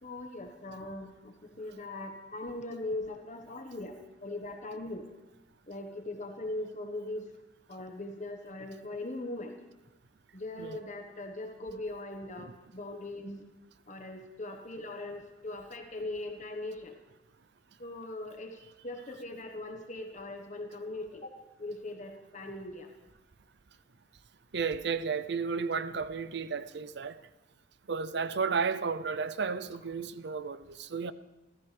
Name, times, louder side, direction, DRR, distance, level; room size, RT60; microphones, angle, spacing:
voice 1, 0.0-3.9 4.2-5.0 5.7-7.3 7.7-9.6 10.3-13.4 13.9-16.9 17.8-22.9, left 2 dB, 40° left, 1.3 m, -40 dB
voice 2, 24.5-27.2 27.9-31.1, right 5 dB, 60° right, 0.6 m, -33 dB
28.5 x 14.0 x 3.4 m
head